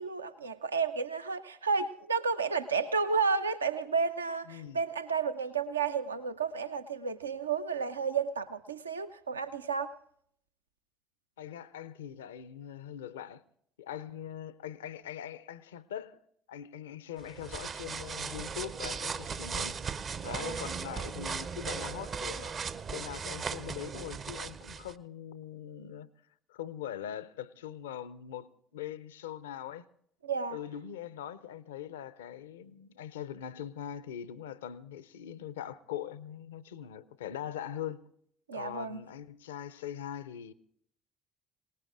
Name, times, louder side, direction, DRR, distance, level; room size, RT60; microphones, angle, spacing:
voice 1, 0.0-9.9 20.2-20.6 30.2-30.6 38.5-39.0, right 5 dB, 80° right, 0.6 m, -32 dB
voice 2, 4.5-4.8 11.4-13.4 13.8-16.2 16.5-19.8 20.2-22.6 22.9-26.1 26.5-29.8 30.5-38.0 38.5-40.5, left 10 dB, 75° left, 0.5 m, -42 dB
sound 1, 17.2-24.9, right 6 dB, 40° right, 0.6 m, -37 dB
25.5 x 19.0 x 2.5 m
figure-of-eight pair, 55°, 0 cm